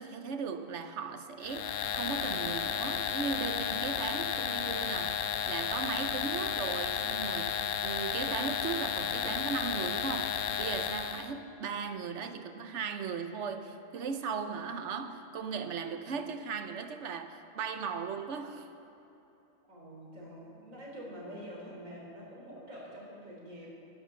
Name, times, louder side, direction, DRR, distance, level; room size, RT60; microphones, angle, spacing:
voice 1, 0.0-18.7, right 5 dB, 65° right, 8 dB, 1.1 m, -37 dB
sound 1, 1.4-11.3, left 8 dB, 80° left, 1.0 m, -33 dB
voice 2, 19.7-23.7, equal, 85° right, -4 dB, 3.8 m, -46 dB
13.0 x 10.5 x 6.8 m, 2.9 s
omnidirectional pair, 1.4 m